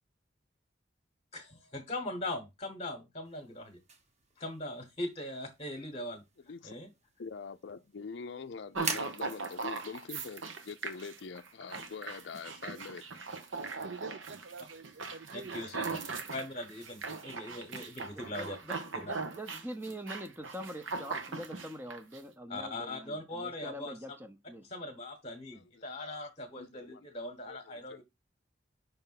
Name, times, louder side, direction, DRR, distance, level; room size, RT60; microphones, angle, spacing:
voice 1, 1.3-3.8 4.4-6.2 6.6-6.9 15.3-16.0 16.3-18.6 22.5-23.9 24.7-28.0, left 1 dB, 30° left, 1.1 m, -40 dB
sound 1, 3.2-19.7, right 4 dB, 35° right, 1.0 m, -49 dB
voice 2, 7.2-13.0 25.5-26.3 26.6-27.1 27.5-27.6 27.9-28.0, left 5 dB, 60° left, 0.5 m, -44 dB
sound 2, 8.7-22.2, right 4 dB, 85° right, 1.0 m, -39 dB
voice 3, 13.6-15.6 15.9-16.2, right 4 dB, 65° right, 0.5 m, -47 dB
voice 4, 18.3-24.7, equal, 10° right, 0.7 m, -44 dB
5.6 x 3.4 x 5.7 m
head